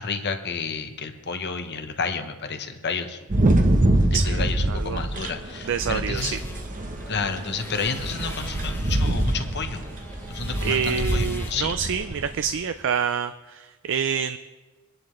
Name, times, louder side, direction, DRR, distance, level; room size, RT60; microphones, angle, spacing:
voice 1, 0.0-3.2 4.1-6.4 7.1-9.8 10.3-11.7, left 5 dB, 50° left, 7 dB, 1.0 m, -30 dB
sound 1, 3.3-12.5, right 1 dB, 35° right, 0.9 m, -25 dB
voice 2, 4.1-5.1 5.7-6.3 10.6-14.4, right 7 dB, 60° right, 10 dB, 0.4 m, -27 dB
sound 2, 6.1-13.0, left 2 dB, 10° left, 0.8 m, -42 dB
23.5 x 10.5 x 3.2 m, 1.2 s
head